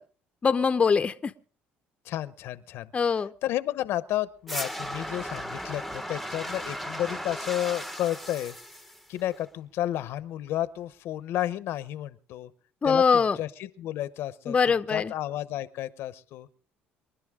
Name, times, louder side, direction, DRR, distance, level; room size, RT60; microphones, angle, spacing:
voice 1, 0.4-1.3 2.9-3.3 12.8-13.4 14.5-15.1, left 5 dB, 30° left, 0.7 m, -23 dB
voice 2, 2.1-2.9 3.4-8.6 9.1-12.5 12.8-14.5 14.9-16.5, left 13 dB, 70° left, 0.9 m, -32 dB
sound 1, 4.5-9.5, equal, 5° right, 1.0 m, -36 dB
27.0 x 11.5 x 3.7 m
cardioid pair, 105°, 4 cm